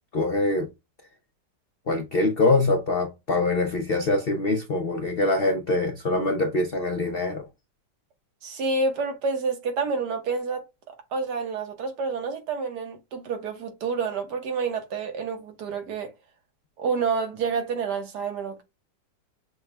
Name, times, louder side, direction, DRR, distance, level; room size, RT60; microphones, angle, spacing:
voice 1, 0.1-0.7 1.9-7.5, left 2 dB, 65° left, 0.6 m, -24 dB
voice 2, 8.4-10.6 11.1-16.1 16.8-18.6, right 4 dB, 65° right, 1.6 m, -28 dB
6.1 x 2.3 x 3.3 m
omnidirectional pair, 1.9 m